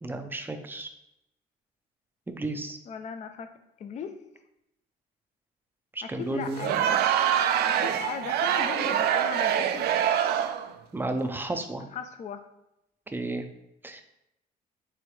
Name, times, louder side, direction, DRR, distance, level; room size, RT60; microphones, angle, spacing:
voice 1, 0.0-0.9 2.3-2.8 5.9-6.7 10.9-11.8 13.1-13.4 13.8-14.0, right 2 dB, 10° right, 6 dB, 0.5 m, -32 dB
voice 2, 2.8-3.5 3.8-4.2 6.0-7.0 7.6-9.9 11.8-12.4, left 6 dB, 45° left, 8 dB, 0.5 m, -38 dB
Crowd, 6.5-10.7, right 9 dB, 70° right, 0.4 m, -25 dB
4.7 x 3.3 x 3.1 m, 0.84 s
cardioid pair, 110°, 17 cm